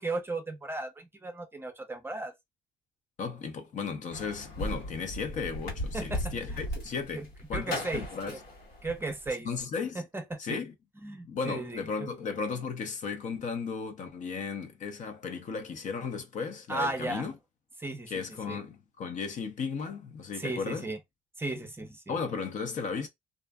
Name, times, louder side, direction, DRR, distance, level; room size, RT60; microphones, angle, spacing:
voice 1, 0.0-2.3 5.9-6.6 7.1-7.2 7.5-8.4 8.8-9.5 9.9-10.6 11.0-12.1 16.7-17.3 17.8-18.6 20.3-21.0 21.4-22.1, right 2 dB, 15° right, 0.6 m, -36 dB
voice 2, 3.2-8.4 9.5-10.0 10.4-10.7 11.2-17.3 18.1-20.9 22.1-23.1, left 5 dB, 45° left, 0.6 m, -35 dB
sound 1, 4.1-9.3, left 1 dB, 80° left, 1.2 m, -37 dB
2.4 x 2.4 x 2.3 m
cardioid pair, 110°, 17 cm